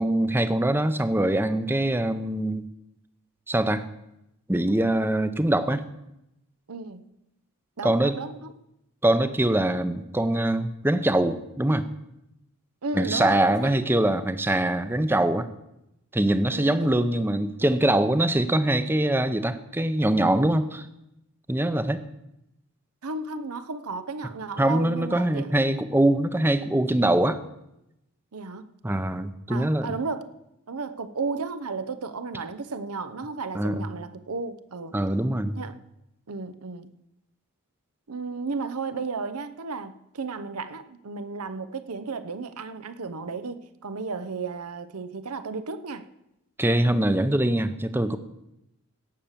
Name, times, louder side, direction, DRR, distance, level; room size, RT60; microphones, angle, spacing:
voice 1, 0.0-2.6 3.5-3.8 4.5-5.8 7.8-8.2 9.0-11.8 12.9-15.5 16.1-20.9 21.5-22.0 24.6-27.4 28.8-29.9 33.5-33.9 34.9-35.6 46.6-48.2, right 1 dB, 10° right, 11 dB, 0.6 m, -23 dB
voice 2, 6.7-7.1 7.8-8.5 12.8-13.8 16.5-16.9 23.0-25.5 28.3-28.8 29.5-30.3 30.7-35.0 35.6-35.8 36.3-36.9 38.1-46.1, right 4 dB, 85° right, 13 dB, 0.8 m, -34 dB
17.0 x 6.6 x 7.3 m, 0.86 s
head